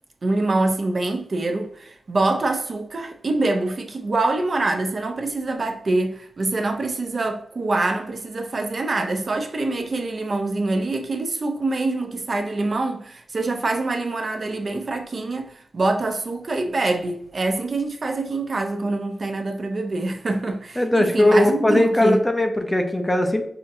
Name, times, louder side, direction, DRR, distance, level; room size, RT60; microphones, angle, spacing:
voice 1, 0.2-22.2, right 2 dB, 45° right, 0.5 m, -25 dB
voice 2, 20.8-23.4, left 1 dB, 15° left, 0.4 m, -19 dB
5.6 x 2.5 x 2.5 m
wide cardioid pair, 125°, 0 cm